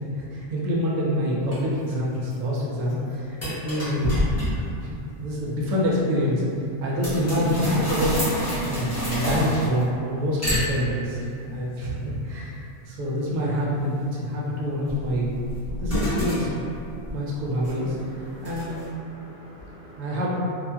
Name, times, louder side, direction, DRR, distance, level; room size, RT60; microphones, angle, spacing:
voice 1, 0.0-4.2 4.5-6.4 6.8-8.1 8.7-15.3 15.8-16.7 17.1-18.8 20.0-20.4, equal, 75° right, -5 dB, 0.9 m, -26 dB
sound 1, 1.5-1.6 2.1-2.6 2.9-3.0 3.4-4.8 7.0-10.0 10.4-11.2 14.9-18.0 18.5-18.8, equal, 15° left, 0.7 m, -28 dB
voice 2, 17.9-20.1, equal, 50° left, -11 dB, 0.9 m, -47 dB
2.8 x 2.4 x 2.2 m, 2.7 s
omnidirectional pair, 1.4 m